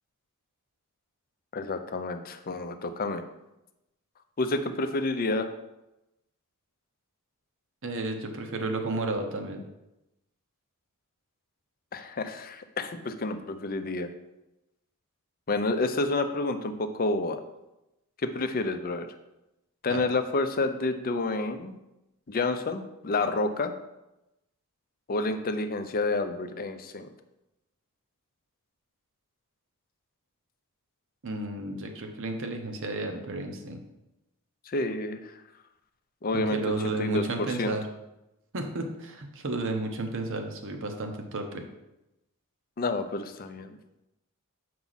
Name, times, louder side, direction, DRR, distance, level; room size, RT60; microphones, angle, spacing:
voice 1, 1.5-3.2 4.4-5.5 11.9-14.1 15.5-17.4 18.2-19.1 19.8-21.7 22.3-23.7 25.1-27.1 34.7-35.3 36.2-36.6 36.8-37.8 42.8-43.7, left 2 dB, 40° left, 9 dB, 0.6 m, -29 dB
voice 2, 7.8-9.6 19.9-20.0 31.2-33.8 36.3-37.8 38.5-41.6, right 2 dB, 60° right, 4 dB, 0.9 m, -32 dB
7.1 x 4.7 x 4.0 m, 0.93 s
head